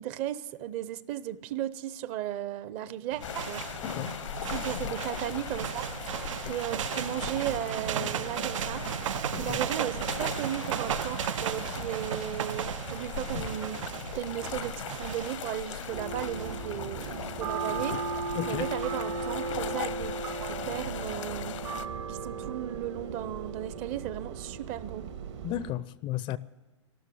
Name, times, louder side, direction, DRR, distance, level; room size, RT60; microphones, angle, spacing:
voice 1, 0.0-3.7 4.5-5.9 6.5-13.8 14.1-18.0 18.4-20.1 20.4-21.6 22.1-25.1, right 12 dB, 40° right, 0.7 m, -35 dB
sound 1, 3.1-19.0, right 10 dB, 85° right, 0.4 m, -36 dB
sound 2, 3.2-21.9, left 10 dB, 80° left, 0.8 m, -39 dB
sound 3, 15.9-25.7, right 4 dB, 70° right, 1.7 m, -36 dB
voice 2, 25.4-26.4, left 14 dB, 30° left, 0.4 m, -33 dB
13.0 x 12.5 x 9.1 m
hypercardioid pair, 125°, 16 cm